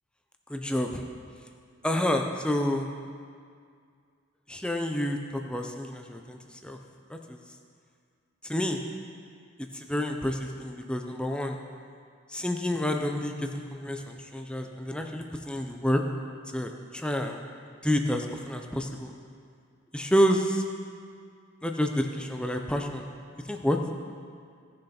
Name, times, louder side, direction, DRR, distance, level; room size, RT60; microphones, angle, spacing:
voice 1, 0.5-1.0 1.8-2.9 4.5-6.8 7.1-7.4 8.4-8.8 9.7-11.6 12.3-16.0 16.5-17.4 17.8-19.1 19.9-20.6 21.6-23.1 23.5-23.8, equal, 5° left, 3 dB, 0.5 m, -29 dB
17.0 x 6.5 x 4.3 m, 2.2 s
head